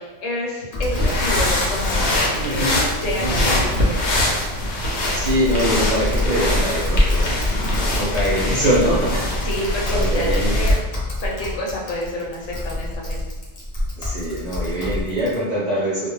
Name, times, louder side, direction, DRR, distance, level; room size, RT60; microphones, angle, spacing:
voice 1, 0.0-2.8 3.0-4.4 9.4-10.8 11.2-13.2, left 1 dB, 90° left, -4 dB, 1.1 m, -29 dB
Typing, 0.7-15.4, left 2 dB, 45° left, 0.5 m, -29 dB
sound 1, 0.9-10.8, left 1 dB, 65° left, 0.9 m, -22 dB
voice 2, 2.4-2.9 3.2-3.6 5.1-7.3 7.9-9.4 9.9-10.5 14.0-16.1, equal, 45° right, -7 dB, 0.6 m, -23 dB
2.3 x 2.1 x 3.0 m, 1.2 s
omnidirectional pair, 1.3 m